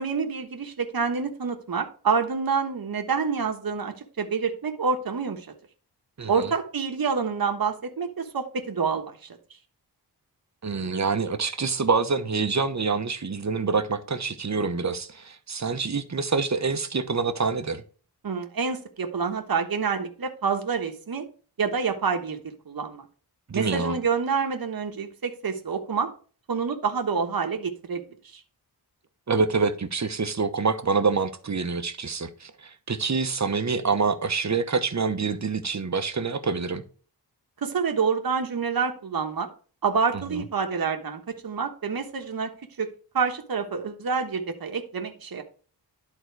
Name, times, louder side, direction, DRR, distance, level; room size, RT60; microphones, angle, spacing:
voice 1, 0.0-5.5 6.3-9.4 14.6-14.7 18.2-21.3 21.6-23.0 23.5-26.1 26.5-28.4 37.6-39.5 39.8-42.5 42.8-42.9 43.1-45.4, right 5 dB, 55° right, 1.3 m, -27 dB
voice 2, 6.2-6.5 10.6-17.8 23.5-23.9 29.3-36.8 40.3-40.4, right 4 dB, 40° right, 1.0 m, -26 dB
11.5 x 3.9 x 4.7 m
wide cardioid pair, 90°, 41 cm